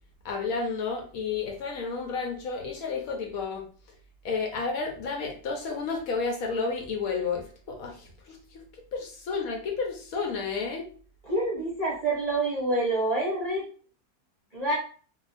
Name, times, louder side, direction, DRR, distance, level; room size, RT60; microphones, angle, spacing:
voice 1, 0.2-3.6 4.2-8.6 8.9-10.9, left 4 dB, 65° left, 2 dB, 1.0 m, -31 dB
voice 2, 11.2-13.6 14.5-14.8, right 2 dB, 40° right, -5 dB, 0.6 m, -27 dB
2.7 x 2.3 x 4.0 m, 0.42 s
omnidirectional pair, 1.7 m